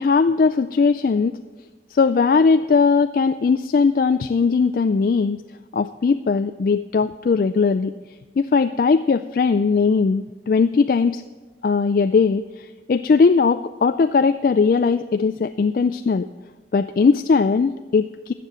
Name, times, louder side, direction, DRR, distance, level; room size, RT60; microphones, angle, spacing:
voice 1, 0.0-1.4 1.9-5.4 5.7-7.9 8.4-11.2 11.6-16.3 16.7-18.3, left 4 dB, 50° left, 10 dB, 0.3 m, -19 dB
13.5 x 7.5 x 7.9 m, 1.3 s
head